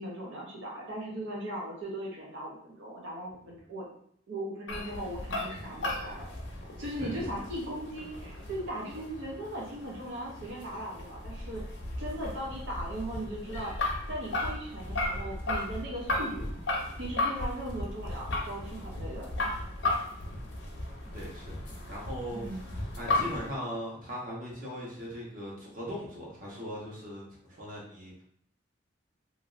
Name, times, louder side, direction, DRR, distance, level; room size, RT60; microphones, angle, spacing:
voice 1, 0.0-3.9 4.3-6.3 6.8-11.6 12.0-16.5 17.0-19.3 22.3-22.7, right 1 dB, 85° right, -3 dB, 0.6 m, -38 dB
sound 1, 4.7-23.5, left 2 dB, 80° left, 0.6 m, -35 dB
voice 2, 21.1-21.5 21.9-28.2, equal, 45° right, -5 dB, 1.0 m, -39 dB
3.0 x 2.6 x 2.5 m, 0.67 s
head